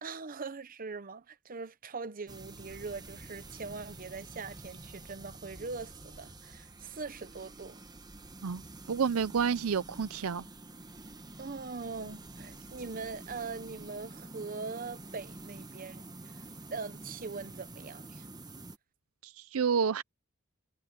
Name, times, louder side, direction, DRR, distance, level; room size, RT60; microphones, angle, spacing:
voice 1, 0.0-7.8 11.4-16.4 16.7-18.3, right 4 dB, 40° right, 0.8 m, -42 dB
sound 1, 2.3-18.8, right 2 dB, 20° right, 1.1 m, -48 dB
voice 2, 8.9-10.4 19.2-20.0, right 6 dB, 80° right, 0.5 m, -29 dB
head